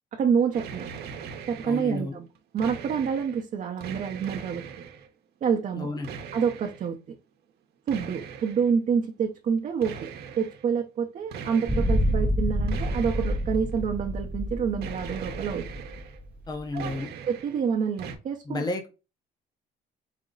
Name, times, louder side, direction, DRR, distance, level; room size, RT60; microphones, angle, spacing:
voice 1, 0.1-1.0 1.5-2.3 2.5-4.6 5.4-5.9 6.3-7.0 7.9-10.1 10.4-15.7 16.7-16.9 17.3-18.6, right 6 dB, 45° right, 0.7 m, -27 dB
sound 1, 0.5-2.0 2.4-3.4 3.8-5.1 6.0-6.9 7.9-8.7 9.8-10.7 11.3-12.2 12.7-13.8 14.8-16.2 16.5-17.6 18.0-18.2, right 6 dB, 70° right, 0.9 m, -40 dB
voice 2, 1.6-2.2 5.7-6.1 16.5-17.1 18.4-18.9, left 2 dB, 25° left, 0.8 m, -32 dB
sound 2, 11.7-16.9, equal, 10° right, 0.4 m, -28 dB
5.0 x 2.1 x 3.8 m
cardioid pair, 110°, 17 cm